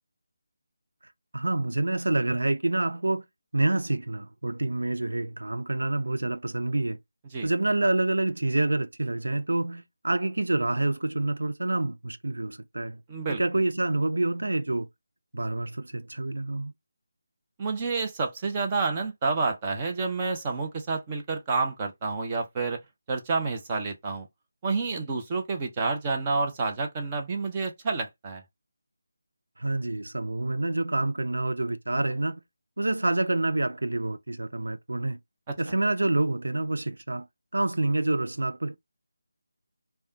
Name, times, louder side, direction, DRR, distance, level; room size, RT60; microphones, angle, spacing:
voice 1, 1.3-3.3 3.5-7.0 7.4-13.0 13.3-14.9 15.3-16.7 29.6-32.4 32.8-35.2 35.6-37.3 37.5-38.8, right 2 dB, 80° right, 0.4 m, -27 dB
voice 2, 13.1-13.4 17.6-22.8 23.1-24.3 24.6-28.4 35.5-35.6, right 4 dB, 25° right, 0.7 m, -29 dB
3.4 x 2.3 x 2.7 m
figure-of-eight pair, 160°, 0 cm